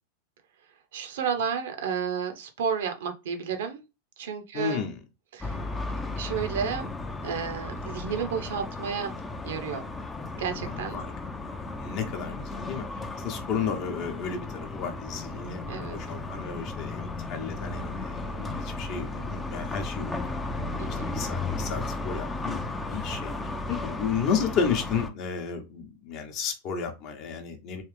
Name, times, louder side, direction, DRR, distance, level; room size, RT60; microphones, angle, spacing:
voice 1, 0.9-3.8 4.2-4.8 5.3-5.6 6.2-6.9 7.2-9.2 9.4-9.8 10.3-11.0 15.7-16.0 20.8-21.1, right 7 dB, 60° right, 0.7 m, -31 dB
voice 2, 4.5-5.0 10.6-11.1 11.8-12.9 13.2-20.2 20.9-27.8, left 6 dB, 40° left, 0.9 m, -32 dB
sound 1, 5.4-25.1, left 2 dB, 15° left, 0.5 m, -35 dB
3.2 x 3.2 x 3.1 m
figure-of-eight pair, 90°, 0 cm